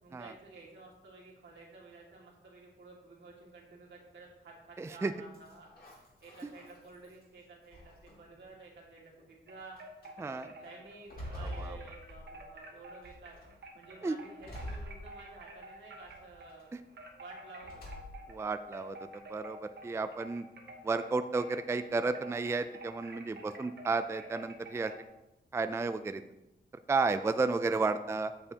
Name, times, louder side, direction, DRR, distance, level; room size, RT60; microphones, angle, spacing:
voice 1, 0.0-9.8 10.2-13.4 13.7-16.7 17.2-18.1, right 3 dB, 85° right, -4 dB, 2.1 m, -52 dB
voice 2, 4.8-5.1 10.2-10.5 11.3-11.8 14.0-14.2 18.3-19.0 19.3-20.4 20.8-24.9 25.5-26.2 26.9-28.3, right 3 dB, 15° right, 10 dB, 0.3 m, -32 dB
sound 1, 5.3-7.2 7.7-8.4 9.2-9.3 9.8-10.1 10.6-12.6 13.0-13.5 14.4-15.6 16.0-16.6 17.6-18.4, equal, 55° left, 2.5 m, -46 dB
sound 2, 9.5-16.6 16.9-25.0, right 1 dB, 70° right, 1.0 m, -50 dB
8.6 x 6.9 x 2.8 m, 0.95 s
cardioid pair, 80°, 19 cm